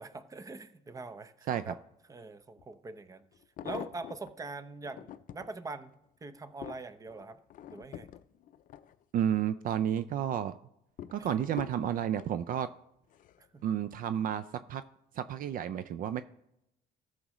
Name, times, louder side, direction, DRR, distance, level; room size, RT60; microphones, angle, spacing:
voice 1, 0.0-1.8 2.1-3.2 3.6-5.9 6.2-7.4 7.7-8.1 11.2-11.3 13.5-13.6, right 3 dB, 20° right, 12 dB, 0.6 m, -43 dB
sound 1, 2.6-2.7 3.3-4.3 4.8-5.5 6.1-9.5 9.9-10.3 11.0-12.4 13.1-13.5 13.8-13.9, left 10 dB, 50° left, 0.5 m, -46 dB
voice 2, 9.1-10.5 11.1-12.7 13.6-14.8 15.2-16.2, right 9 dB, 55° right, 13 dB, 0.4 m, -31 dB
14.0 x 6.4 x 3.1 m, 0.82 s
cardioid pair, 110°, 17 cm